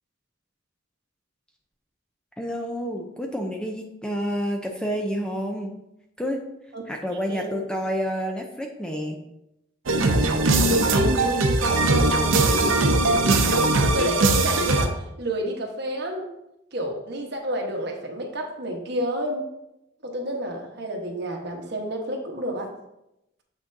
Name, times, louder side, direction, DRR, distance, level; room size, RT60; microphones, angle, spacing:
voice 1, 2.4-5.7 6.2-6.4 6.9-9.2, equal, 5° left, 2 dB, 0.5 m, -29 dB
sound 1, 9.9-14.9, right 2 dB, 85° right, 0.7 m, -20 dB
voice 2, 10.9-16.2 16.7-19.4 20.0-22.7, right 1 dB, 55° right, 1 dB, 1.1 m, -30 dB
7.4 x 6.0 x 2.6 m, 0.86 s
head